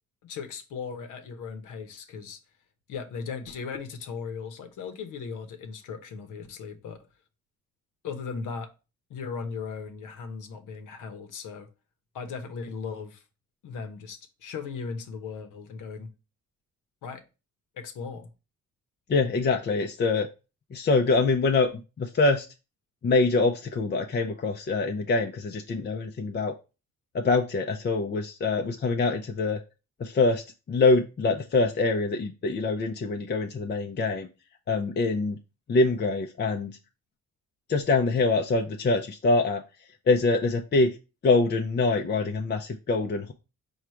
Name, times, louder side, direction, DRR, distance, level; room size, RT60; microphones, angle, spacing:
voice 1, 0.2-2.4 2.9-7.0 8.0-8.7 9.1-11.7 12.1-13.2 13.6-16.1 17.0-17.2 17.7-18.3, left 5 dB, 80° left, 0.9 m, -37 dB
voice 2, 19.1-20.3 20.7-21.7 22.0-22.5 23.0-26.5 27.1-29.6 30.0-34.3 34.7-35.4 35.7-36.8 37.7-39.6 40.1-41.0 41.2-43.3, left 3 dB, 35° left, 0.5 m, -24 dB
4.8 x 2.4 x 4.3 m
cardioid pair, 80°, 31 cm